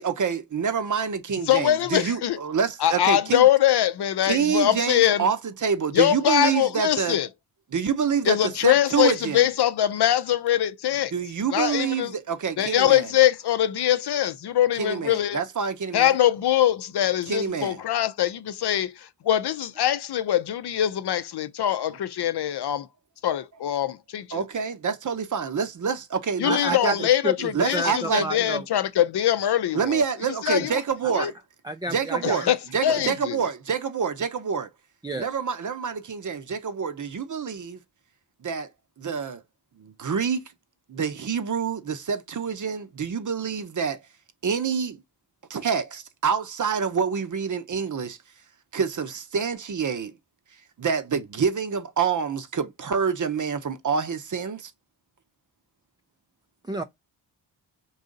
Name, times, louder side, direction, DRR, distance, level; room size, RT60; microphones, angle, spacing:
voice 1, 0.0-3.5 4.2-7.2 7.7-9.5 11.1-13.1 14.8-16.1 17.3-17.8 21.6-21.7 24.3-26.9 27.5-28.3 29.7-31.3 31.9-32.5 32.7-34.7 35.1-37.8 38.4-38.7 39.0-39.4 39.8-40.4 40.9-44.0 44.4-45.0 45.5-48.2 48.7-50.1 50.8-54.7, right 6 dB, 40° right, 0.7 m, -27 dB
voice 2, 1.5-2.4 2.8-5.3 5.9-7.3 8.3-11.1 11.5-12.1 12.6-15.4 15.9-22.9 23.2-24.4 26.4-30.7 31.1-31.3 32.4-32.6 32.8-33.4, left 11 dB, 60° left, 0.6 m, -23 dB
voice 3, 26.4-26.9 27.2-27.3 27.7-28.6 31.2-31.3 31.7-32.4 35.0-35.3 56.7-56.8, right 1 dB, 10° right, 0.3 m, -29 dB
3.9 x 2.7 x 3.8 m
cardioid pair, 55°, 46 cm